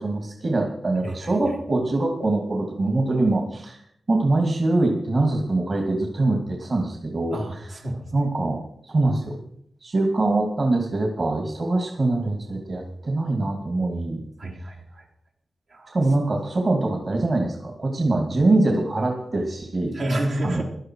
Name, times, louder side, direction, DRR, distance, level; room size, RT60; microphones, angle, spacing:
voice 1, 0.0-3.8 4.1-7.4 8.1-9.4 9.8-14.2 15.9-19.9 20.4-20.6, right 2 dB, 50° right, 2 dB, 2.7 m, -23 dB
voice 2, 1.0-1.6 7.3-8.0 14.4-15.1 15.7-16.0 19.9-20.6, right 1 dB, 80° right, -2 dB, 3.7 m, -29 dB
16.0 x 12.0 x 4.8 m, 0.68 s
cardioid pair, 80°, 0 cm